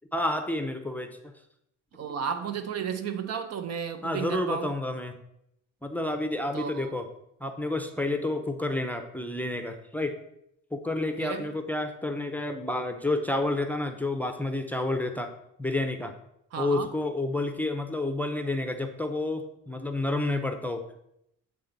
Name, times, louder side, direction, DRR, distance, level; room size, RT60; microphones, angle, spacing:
voice 1, 0.1-1.3 4.0-5.2 5.8-7.1 7.4-10.2 10.7-15.3 15.6-16.1 16.6-20.8, left 2 dB, 5° left, 0.6 m, -30 dB
voice 2, 1.9-4.7 6.5-6.9 11.2-11.5 16.5-16.9, right 7 dB, 55° right, 0.7 m, -33 dB
8.4 x 3.3 x 3.9 m
cardioid pair, 90°, 30 cm